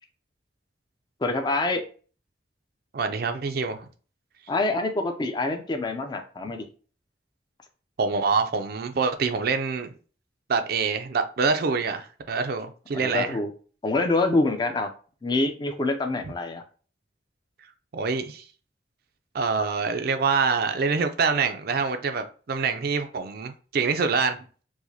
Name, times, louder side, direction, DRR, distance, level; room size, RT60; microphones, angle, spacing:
voice 1, 1.2-1.8 4.5-6.7 12.9-13.5 13.8-14.9 15.2-16.6, left 2 dB, 25° left, 0.4 m, -26 dB
voice 2, 2.9-3.9 8.0-9.9 10.5-13.4 17.9-18.4 19.3-24.4, right 5 dB, 55° right, 0.4 m, -25 dB
4.7 x 2.1 x 2.7 m
head